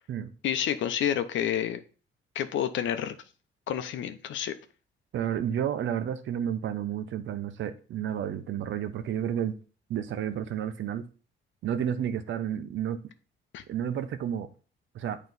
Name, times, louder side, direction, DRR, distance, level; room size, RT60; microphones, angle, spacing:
voice 1, 0.4-1.8 2.3-3.2 3.7-4.6 13.5-13.6, left 10 dB, 75° left, 0.7 m, -29 dB
voice 2, 5.1-9.6 9.9-11.1 11.6-13.0 13.7-14.5 14.9-15.2, right 9 dB, 70° right, 0.8 m, -31 dB
9.0 x 3.1 x 4.0 m
cardioid pair, 90°, 20 cm